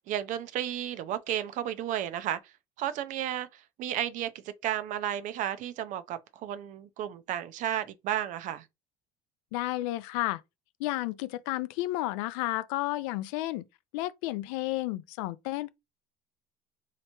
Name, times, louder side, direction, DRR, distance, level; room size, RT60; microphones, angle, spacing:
voice 1, 0.0-2.5 2.8-8.7, right 11 dB, 50° right, 0.4 m, -33 dB
voice 2, 9.5-10.4 10.8-13.6 13.9-15.7, left 17 dB, 90° left, 0.4 m, -32 dB
3.3 x 2.8 x 2.9 m
cardioid pair, 135°, 17 cm